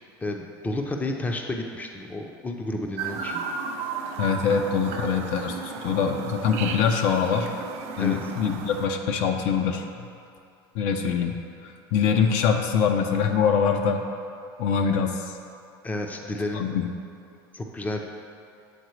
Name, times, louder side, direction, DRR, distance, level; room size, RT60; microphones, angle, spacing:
voice 1, 0.2-3.4 8.0-8.2 15.8-16.7 17.5-18.0, left 2 dB, 10° left, 3 dB, 0.5 m, -31 dB
Chirp tweet, 3.0-8.9, right 5 dB, 55° right, 0.5 m, -34 dB
voice 2, 4.2-7.5 8.0-10.1 10.7-11.4 11.6-14.0 14.6-15.3 16.5-16.9, left 6 dB, 60° left, 4 dB, 0.5 m, -24 dB
8.0 x 3.8 x 3.1 m, 2.5 s
hypercardioid pair, 90°, 13 cm